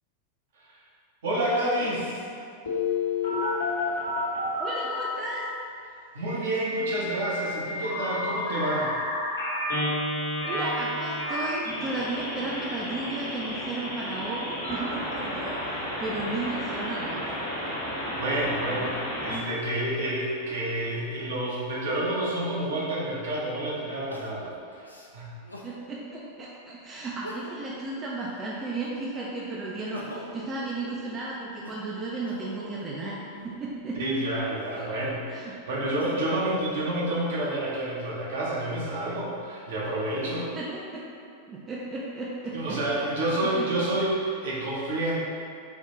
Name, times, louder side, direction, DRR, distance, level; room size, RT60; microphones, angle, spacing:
voice 1, 1.2-2.2 6.1-8.9 18.1-24.9 25.1-25.3 33.9-40.5 42.5-45.2, right 1 dB, 60° right, -6 dB, 0.8 m, -29 dB
Telephone, 2.6-5.1 6.5-19.4, left 2 dB, 70° left, 1.0 m, -31 dB
voice 2, 4.6-5.5 10.4-17.4 18.8-18.9 25.6-33.2 33.4-34.0 34.7-34.8 35.3-35.5 40.5-41.0 41.5-42.8 43.4-43.7, right 2 dB, 25° right, -5 dB, 0.4 m, -34 dB
Crying sobbing, 22.7-22.8 24.1-25.8 26.3-26.4 27.1-27.8 28.1-29.2 29.6-33.6 34.3-36.4 37.0-37.8, equal, 85° left, 0.3 m, -45 dB
3.7 x 2.3 x 3.0 m, 2.4 s
figure-of-eight pair, 90°, 0 cm